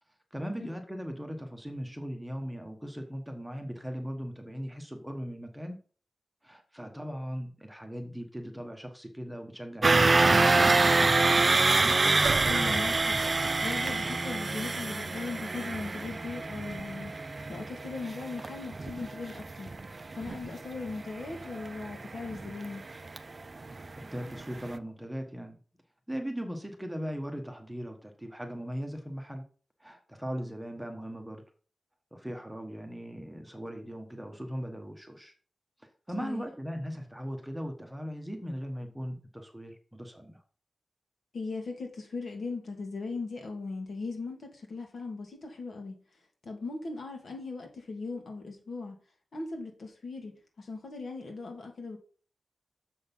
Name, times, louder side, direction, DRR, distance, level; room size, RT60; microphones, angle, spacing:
voice 1, 0.3-5.8 6.4-11.3 23.6-25.6 26.1-29.5 29.8-31.4 32.1-35.3 36.1-40.4, equal, 5° right, 1.2 m, -39 dB
sound 1, 9.8-23.9 24.2-24.4 24.7-24.8, right 3 dB, 30° right, 0.4 m, -26 dB
sound 2, 12.3-14.4 14.9-15.0, right 5 dB, 75° right, 0.8 m, -39 dB
voice 2, 12.5-13.2 13.6-17.1 17.5-19.7 20.2-22.8 36.2-36.4 41.3-46.0 46.4-49.0 49.3-52.0, left 3 dB, 70° left, 2.4 m, -38 dB
7.0 x 6.4 x 5.4 m
wide cardioid pair, 160°, 0 cm